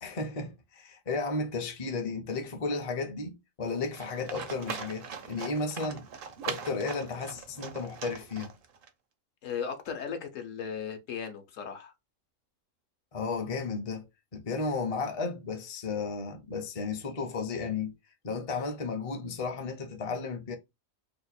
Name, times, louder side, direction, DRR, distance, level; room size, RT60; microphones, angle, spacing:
voice 1, 0.0-6.1 6.4-8.5 13.1-17.9 18.2-20.6, left 4 dB, 35° left, 0.6 m, -34 dB
Livestock farm animals working animals, 3.9-8.9, right 6 dB, 55° right, 0.6 m, -40 dB
voice 2, 9.4-11.9, left 7 dB, 70° left, 1.1 m, -36 dB
2.9 x 2.4 x 4.1 m
omnidirectional pair, 1.4 m